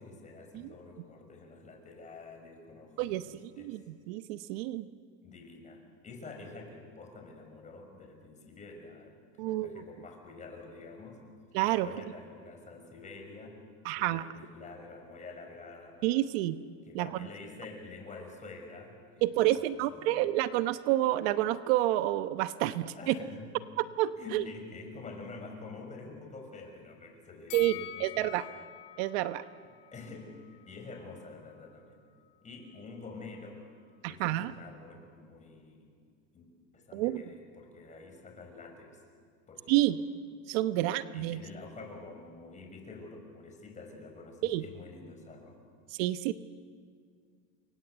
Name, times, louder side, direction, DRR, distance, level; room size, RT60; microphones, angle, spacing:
voice 1, 0.0-3.8 5.2-11.2 11.6-13.6 14.0-16.1 16.8-20.3 22.6-23.6 24.2-28.3 29.9-32.0 32.4-33.6 34.0-35.9 36.3-36.5 36.7-39.0 39.5-39.8 41.1-45.6, left 3 dB, 20° left, 3 dB, 6.3 m, -48 dB
voice 2, 3.0-4.9 9.4-9.8 11.5-11.9 13.8-14.2 16.0-16.6 16.9-17.1 19.2-23.1 24.0-24.4 27.5-28.4 29.0-29.4 34.0-34.5 36.9-37.2 39.7-40.0 40.5-41.4 44.4-44.6 46.0-46.3, right 15 dB, 65° right, 12 dB, 1.0 m, -29 dB
Bell, 27.5-30.7 31.0-31.2, left 14 dB, 50° left, 1.9 m, -46 dB
29.0 x 23.5 x 8.2 m, 2.1 s
supercardioid pair, 135°, 33 cm